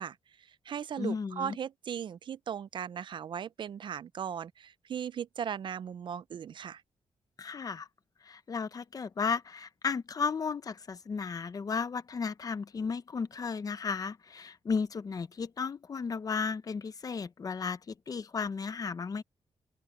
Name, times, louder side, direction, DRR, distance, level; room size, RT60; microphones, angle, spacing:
voice 1, 0.0-6.8, right 8 dB, 50° right, 0.4 m, -38 dB
voice 2, 1.0-1.6 7.4-7.9 8.2-19.2, left 5 dB, 35° left, 0.8 m, -34 dB
open air
wide cardioid pair, 160°, 10 cm